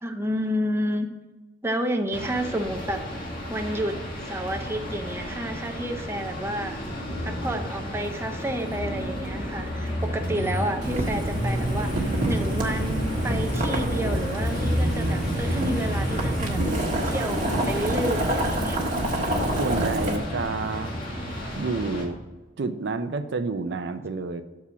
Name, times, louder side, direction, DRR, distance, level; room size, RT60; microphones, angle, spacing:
voice 1, 0.0-1.1 1.6-6.8 7.2-16.6 17.0-18.8, equal, 15° right, 4 dB, 0.7 m, -30 dB
sound 1, 2.1-22.1, equal, 50° left, 1.8 m, -32 dB
Boiling, 10.8-20.2, right 1 dB, 45° right, 1.6 m, -27 dB
voice 2, 19.6-21.0 21.6-22.2 22.6-24.4, right 3 dB, 65° right, 9 dB, 0.5 m, -29 dB
7.0 x 4.8 x 7.0 m, 1.1 s
head